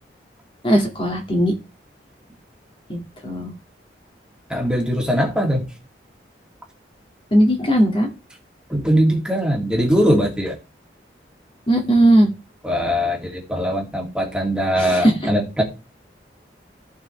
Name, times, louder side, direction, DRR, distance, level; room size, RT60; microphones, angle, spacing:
voice 1, 0.6-1.5 2.9-3.5 7.3-8.1 11.7-12.3 14.8-15.1, right 1 dB, 30° left, 2 dB, 2.0 m, -17 dB
voice 2, 4.5-5.6 8.7-10.6 12.6-15.6, equal, 5° right, 0 dB, 2.2 m, -21 dB
15.0 x 5.8 x 3.2 m, 0.29 s
head